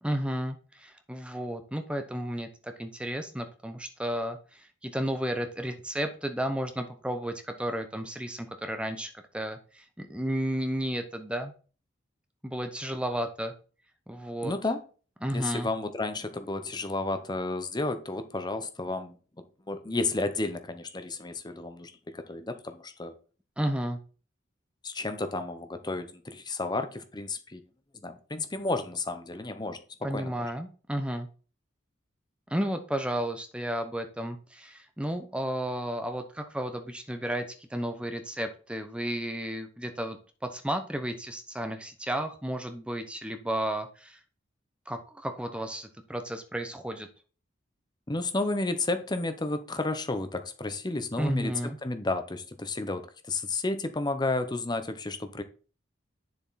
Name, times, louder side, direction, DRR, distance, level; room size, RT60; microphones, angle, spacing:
voice 1, 0.0-11.5 12.4-13.5 14.1-14.5 15.2-15.7 23.6-24.0 30.0-31.3 32.5-40.2 40.5-44.2 44.9-47.1 51.2-51.8, right 1 dB, 5° right, 0.8 m, -33 dB
voice 2, 14.4-14.8 15.3-19.1 19.7-23.1 24.8-27.6 28.0-29.8 30.1-30.3 48.1-51.5 51.8-53.0 53.3-55.4, left 2 dB, 20° left, 0.9 m, -32 dB
9.9 x 7.0 x 4.1 m
head